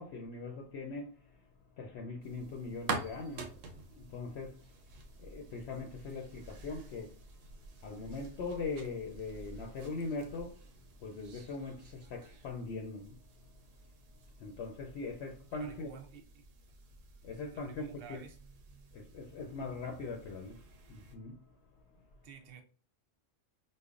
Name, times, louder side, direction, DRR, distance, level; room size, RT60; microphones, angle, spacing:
voice 1, 0.0-1.4 1.8-3.6 3.8-4.8 5.2-7.2 7.8-10.6 11.0-13.5 14.4-15.9 17.2-18.2 18.9-21.5, left 3 dB, 65° left, 0.8 m, -41 dB
sound 1, 2.2-21.2, right 4 dB, 80° right, 1.0 m, -48 dB
voice 2, 15.5-16.8 17.3-18.4 21.9-22.6, right 7 dB, 60° right, 0.7 m, -53 dB
5.2 x 2.1 x 2.4 m
omnidirectional pair, 1.3 m